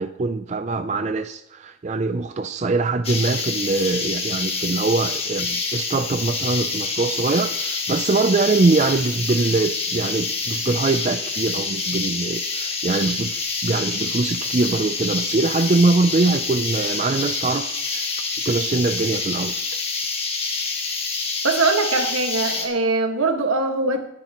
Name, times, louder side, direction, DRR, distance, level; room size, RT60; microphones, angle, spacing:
voice 1, 0.0-18.1 18.4-19.6, right 3 dB, 35° right, 0.4 m, -23 dB
sound 1, 3.0-22.7, left 4 dB, 30° left, 1.7 m, -27 dB
voice 2, 21.4-24.1, right 3 dB, 85° right, 1.7 m, -22 dB
19.5 x 9.9 x 3.0 m
head